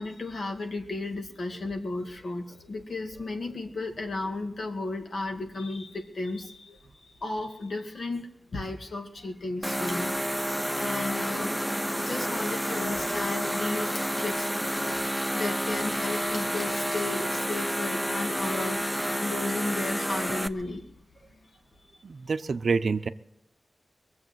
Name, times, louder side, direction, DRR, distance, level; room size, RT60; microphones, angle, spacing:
voice 1, 0.0-6.8 7.2-10.2 10.8-11.5 12.1-14.5 15.3-18.8 19.2-20.9, left 2 dB, 65° left, 4 dB, 2.2 m, -34 dB
sound 1, 9.6-20.5, equal, ahead, 0.6 m, -29 dB
voice 2, 22.0-23.1, right 4 dB, 70° right, 11 dB, 0.6 m, -27 dB
22.0 x 7.8 x 7.9 m, 0.79 s
wide cardioid pair, 80°, 0 cm